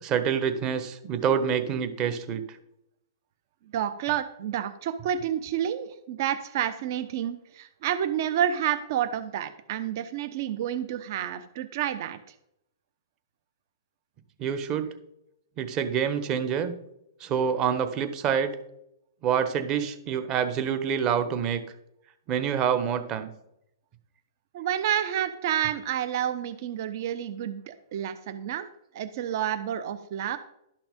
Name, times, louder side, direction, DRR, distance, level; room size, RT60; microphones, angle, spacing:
voice 1, 0.0-2.4 14.4-14.9 15.6-16.7 17.2-18.5 19.2-21.6 22.3-23.3, right 8 dB, 30° right, 10 dB, 1.2 m, -27 dB
voice 2, 3.7-12.2 24.5-28.7 28.9-30.4, right 10 dB, 55° right, 12 dB, 0.8 m, -29 dB
12.0 x 5.9 x 5.2 m, 0.79 s
hypercardioid pair, 140°, 2 cm